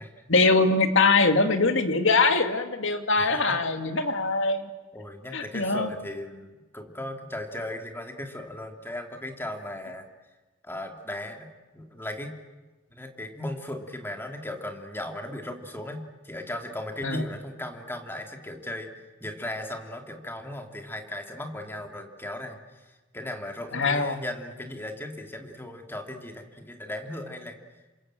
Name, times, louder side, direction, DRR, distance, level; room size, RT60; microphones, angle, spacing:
voice 1, 0.3-4.7 5.3-5.9 17.0-17.2 23.7-24.2, left 3 dB, 65° left, 7 dB, 2.3 m, -22 dB
voice 2, 3.2-3.5 4.9-10.1 10.6-12.4 12.9-18.9 19.2-27.6, left 1 dB, 10° left, 4 dB, 2.9 m, -37 dB
28.5 x 26.0 x 7.8 m, 1.2 s
head